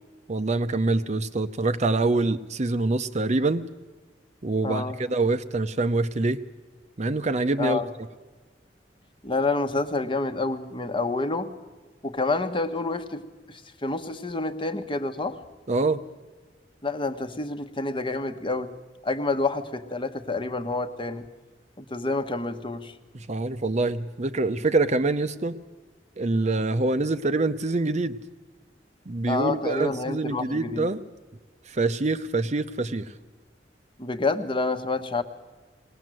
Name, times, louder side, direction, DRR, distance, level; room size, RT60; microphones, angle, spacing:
voice 1, 0.3-3.7 4.4-6.4 7.0-7.8 15.7-16.0 23.1-25.6 26.2-28.2 29.1-31.0 31.7-33.1, right 2 dB, 40° right, 11 dB, 0.7 m, -25 dB
voice 2, 4.6-5.0 7.6-7.9 9.2-11.5 12.0-13.2 13.5-15.4 16.8-18.8 19.0-21.3 21.8-22.9 29.3-30.9 34.0-35.2, left 3 dB, 30° left, 8 dB, 1.2 m, -28 dB
21.0 x 18.5 x 7.7 m, 1.3 s
head